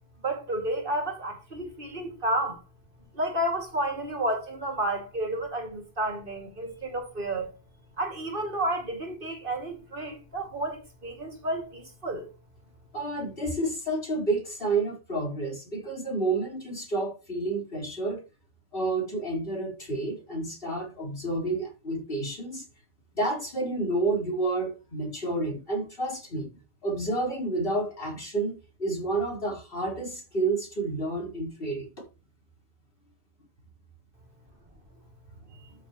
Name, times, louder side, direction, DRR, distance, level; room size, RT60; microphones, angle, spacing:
voice 1, 0.2-2.6 3.1-7.5 8.0-12.3, right 1 dB, 55° right, 2.6 m, -31 dB
voice 2, 12.9-18.2 18.7-22.7 23.1-26.5 26.8-31.9, right 2 dB, 60° left, 4.7 m, -30 dB
13.0 x 6.9 x 3.1 m
omnidirectional pair, 1.1 m